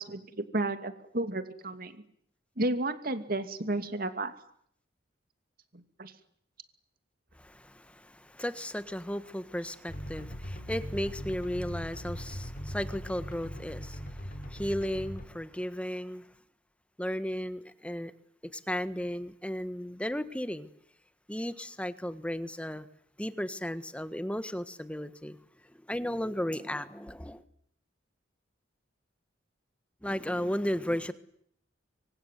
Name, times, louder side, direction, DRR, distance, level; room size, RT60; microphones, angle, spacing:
voice 1, 0.0-2.0 2.6-4.3 5.7-6.1, right 2 dB, 50° right, 2.6 m, -32 dB
voice 2, 7.4-16.2 17.0-18.1 18.4-20.7 21.3-22.8 23.2-25.4 25.7-27.4 30.0-31.1, equal, 5° left, 1.5 m, -35 dB
sound 1, 9.9-15.3, equal, 45° left, 4.2 m, -40 dB
25.0 x 25.0 x 9.4 m
head